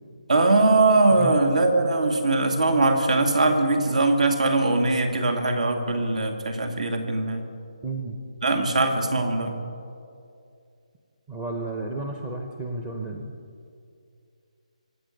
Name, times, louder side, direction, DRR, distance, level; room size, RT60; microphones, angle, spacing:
voice 1, 0.3-7.4 8.4-9.5, right 2 dB, 70° right, 4 dB, 2.5 m, -21 dB
voice 2, 7.8-8.2 11.3-13.3, right 3 dB, 15° right, 2 dB, 0.7 m, -32 dB
25.0 x 8.5 x 6.6 m, 2.5 s
hypercardioid pair, 170°, 4 cm